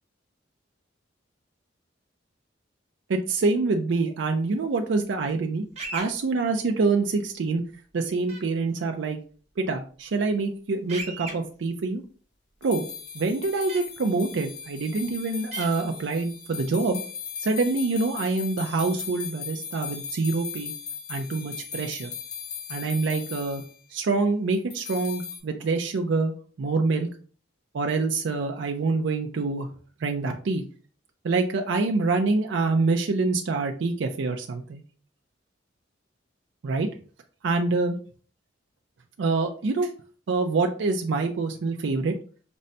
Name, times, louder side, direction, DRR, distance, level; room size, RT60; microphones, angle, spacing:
voice 1, 3.1-5.7 5.9-7.6 7.9-9.2 9.6-12.0 12.6-12.8 13.1-17.0 17.4-20.7 21.1-22.1 22.7-23.6 23.9-26.3 26.6-27.1 27.7-29.7 30.0-30.6 31.2-34.8 36.6-36.9 37.4-38.0 39.2-39.9 40.3-42.1, right 3 dB, 70° right, 4 dB, 0.4 m, -26 dB
sound 1, 5.8-6.1 8.3-8.4 10.9-11.3 13.7-13.8 15.5-15.7, right 4 dB, 35° right, 0.9 m, -34 dB
sound 2, 12.6-23.7 24.7-25.4, left 6 dB, 60° left, 1.1 m, -38 dB
5.2 x 2.1 x 2.6 m, 0.41 s
head